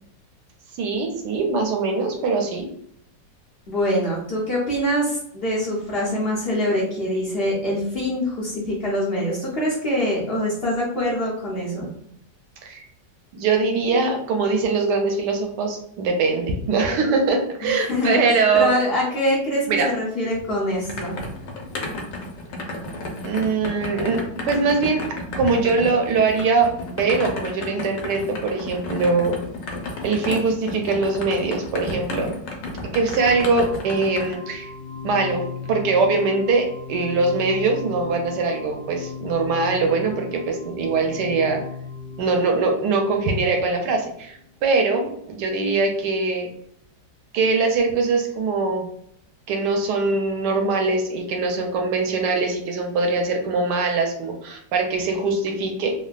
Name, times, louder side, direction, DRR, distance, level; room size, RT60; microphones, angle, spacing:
voice 1, 0.8-2.7 12.6-12.9 13.3-18.7 19.7-19.9 23.2-25.0 25.4-29.4 30.0-32.3 32.9-34.7 35.0-41.6 42.2-46.5 47.3-48.9 49.5-55.9, right 4 dB, 75° right, 3 dB, 1.1 m, -22 dB
voice 2, 3.7-11.9 17.6-18.2 18.5-21.2, equal, 65° left, -5 dB, 0.5 m, -24 dB
sound 1, 20.3-34.3, left 2 dB, 85° left, 1.3 m, -33 dB
sound 2, 33.2-44.1, left 4 dB, 45° right, 0.7 m, -36 dB
3.3 x 2.1 x 2.2 m, 0.68 s
omnidirectional pair, 1.9 m